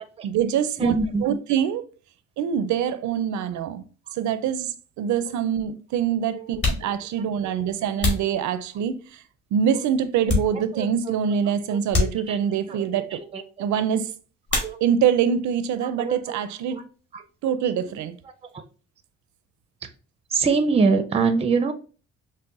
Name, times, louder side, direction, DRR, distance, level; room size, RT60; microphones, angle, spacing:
voice 1, 0.2-1.0 1.2-1.8 2.4-3.8 4.2-9.0 9.5-13.2 13.6-14.1 14.8-16.8 17.4-18.1, right 8 dB, 70° right, 0.5 m, -24 dB
voice 2, 0.8-1.3 6.3-6.6 7.8-7.9 8.2-8.3 10.5-10.9 11.7-12.4 12.7-13.8 14.5-14.8 16.0-16.4 16.7-16.8 17.1-17.5 18.5-18.6 20.3-21.7, right 4 dB, 20° right, 0.4 m, -25 dB
sound 1, 4.7-4.8 5.7-5.8 6.4-9.1 9.6-11.0 11.3-11.4 11.9-12.7 14.4-15.2 15.5-16.2 16.5-18.6, left 3 dB, 35° left, 1.6 m, -29 dB
5.4 x 2.1 x 2.4 m
cardioid pair, 90°, 30 cm